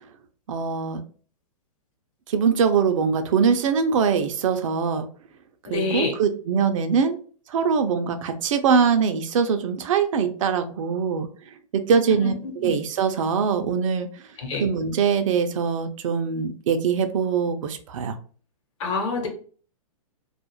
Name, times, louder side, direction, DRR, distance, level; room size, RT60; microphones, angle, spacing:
voice 1, 0.5-1.0 2.3-5.1 5.7-7.2 7.5-11.3 11.7-12.3 12.6-14.1 14.6-18.2, right 6 dB, 60° right, 8 dB, 0.4 m, -22 dB
voice 2, 5.7-6.1 12.2-12.3 12.6-12.7 14.4-14.6 18.8-19.3, left 3 dB, 55° left, 2 dB, 1.0 m, -26 dB
2.4 x 2.0 x 3.0 m, 0.42 s
hypercardioid pair, 135°, 19 cm